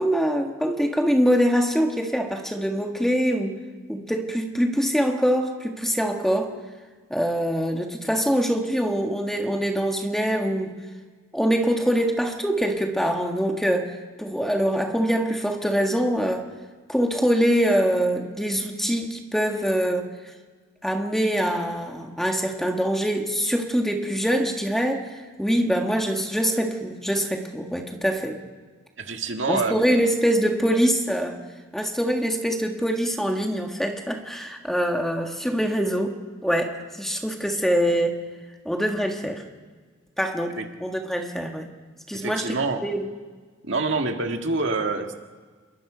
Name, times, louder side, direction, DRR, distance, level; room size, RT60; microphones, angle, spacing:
voice 1, 0.0-3.6 3.9-6.5 7.1-10.7 11.3-16.5 16.9-20.1 20.8-28.4 29.5-31.4 31.7-36.1 36.4-38.2 38.6-39.4 40.2-41.7 42.1-42.6 42.8-43.0, equal, ahead, 2 dB, 1.6 m, -24 dB
voice 2, 29.0-29.8 40.6-40.7 42.1-42.8 43.7-45.1, right 3 dB, 60° right, 4 dB, 1.9 m, -26 dB
27.5 x 22.5 x 5.1 m, 1.5 s
head